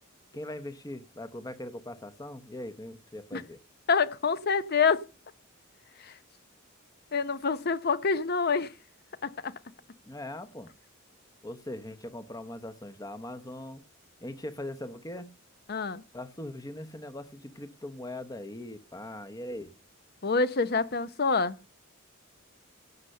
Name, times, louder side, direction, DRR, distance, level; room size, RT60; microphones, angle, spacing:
voice 1, 0.3-3.6 10.1-10.7 11.4-13.8 14.2-15.3 16.1-19.7, left 1 dB, 15° left, 0.9 m, -40 dB
voice 2, 3.9-5.0 6.0-6.1 7.1-8.7 9.2-9.5 15.7-16.0 20.2-21.6, left 5 dB, 50° left, 0.7 m, -26 dB
16.5 x 5.6 x 6.6 m
head